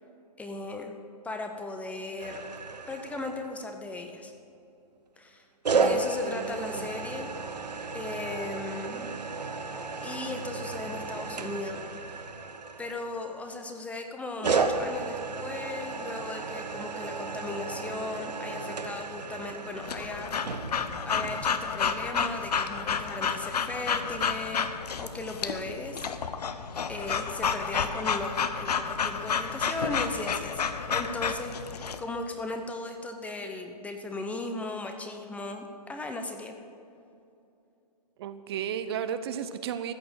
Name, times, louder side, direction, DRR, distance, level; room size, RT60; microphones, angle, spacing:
voice 1, 0.4-1.0 1.2-2.4 2.9-4.3 5.2-5.4 5.7-7.3 7.9-9.1 10.0-11.8 12.8-20.7 21.1-24.7 25.0-26.1 26.9-36.6, left 2 dB, 5° left, 5 dB, 0.7 m, -37 dB
sound 1, 2.2-3.7 5.6-13.5 14.4-21.5, right 4 dB, 85° right, 1.1 m, -33 dB
voice 2, 5.8-6.9 38.2-39.9, right 8 dB, 40° right, 11 dB, 0.6 m, -34 dB
Breathing / Dog, 19.9-32.0, left 6 dB, 70° left, 0.9 m, -30 dB
14.5 x 6.8 x 8.0 m, 2.6 s
hypercardioid pair, 135°, 21 cm